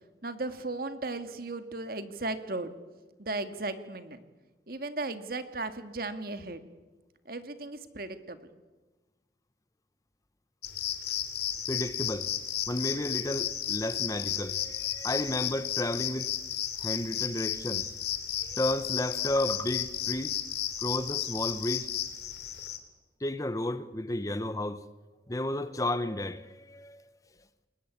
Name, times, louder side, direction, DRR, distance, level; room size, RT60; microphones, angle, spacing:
voice 1, 0.2-2.7 3.2-4.2 4.7-6.6 7.3-8.4, right 2 dB, 55° right, 1.9 m, -36 dB
sound 1, 10.6-22.8, left 11 dB, 65° left, 2.8 m, -33 dB
voice 2, 11.7-12.3 12.7-16.4 16.8-17.9 18.4-20.4 20.8-21.9 23.2-24.8 25.3-27.2, left 1 dB, 20° left, 0.8 m, -32 dB
29.0 x 21.0 x 8.5 m
head